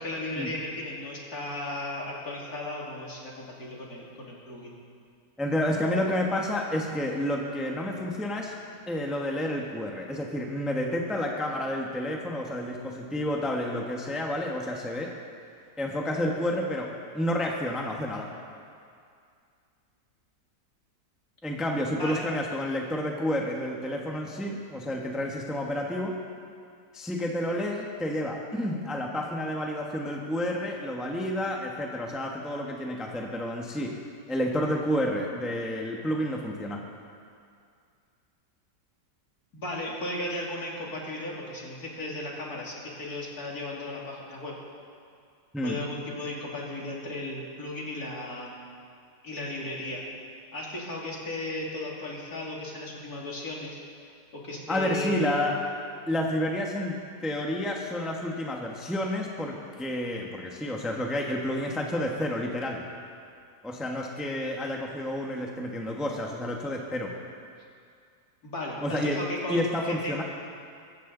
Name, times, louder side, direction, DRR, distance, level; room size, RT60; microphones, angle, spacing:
voice 1, 0.0-4.7 22.0-22.3 39.5-44.5 45.6-48.5 49.2-50.0 50.5-53.8 54.3-55.5 68.4-69.6 70.0-70.2, left 1 dB, 55° left, -3 dB, 3.1 m, -35 dB
voice 2, 5.4-8.5 8.9-15.1 15.8-18.3 21.4-26.2 26.9-33.9 34.3-36.8 45.5-45.8 54.7-55.6 56.1-57.0 57.2-62.9 63.6-67.1 68.8-69.2 69.5-70.2, left 1 dB, ahead, 0 dB, 1.2 m, -30 dB
24.0 x 14.5 x 4.0 m, 2.3 s
omnidirectional pair, 1.9 m